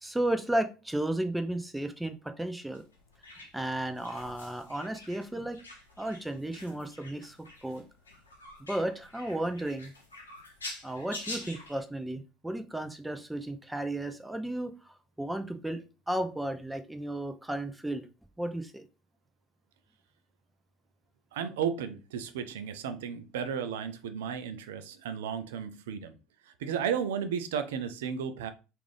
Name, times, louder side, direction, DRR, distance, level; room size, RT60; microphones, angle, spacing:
voice 1, 0.0-2.8 3.3-5.6 6.0-7.8 8.6-9.9 10.8-15.8 16.1-18.1 18.4-18.8, right 1 dB, 5° right, 7 dB, 0.5 m, -34 dB
sound 1, 2.7-11.8, left 2 dB, 85° left, 0.7 m, -46 dB
voice 2, 21.3-26.2 26.6-28.5, right 7 dB, 75° right, 10 dB, 0.4 m, -34 dB
3.5 x 2.5 x 3.3 m, 0.31 s
figure-of-eight pair, 60°, 0 cm